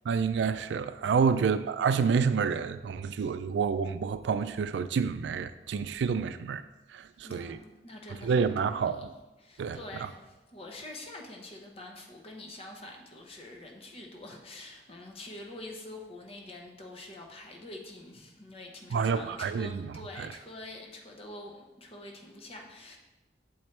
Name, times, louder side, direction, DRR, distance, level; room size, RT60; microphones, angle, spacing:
voice 1, 0.1-6.6 6.9-7.6 8.2-9.0 9.6-10.1 18.9-20.3, right 6 dB, 80° right, 0.3 m, -28 dB
voice 2, 1.2-1.5 7.2-9.1 9.4-23.0, left 1 dB, 35° left, 0.8 m, -46 dB
7.1 x 4.4 x 3.2 m
head